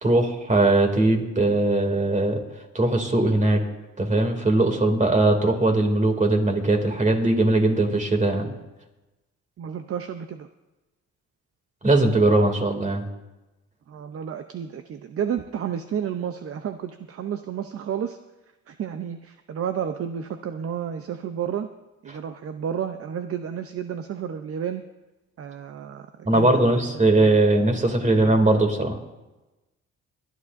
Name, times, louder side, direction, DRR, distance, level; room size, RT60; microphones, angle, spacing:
voice 1, 0.0-2.4 2.7-3.6 4.0-8.5 11.8-13.0 22.1-22.2 26.2-29.0, right 2 dB, 25° right, 4 dB, 2.6 m, -20 dB
voice 2, 9.6-10.5 13.9-18.2 18.7-21.7 22.0-24.8 25.4-27.5 28.0-28.3, right 8 dB, 50° right, 8 dB, 0.7 m, -31 dB
24.5 x 11.0 x 2.6 m, 1.1 s
cardioid pair, 90°, 30 cm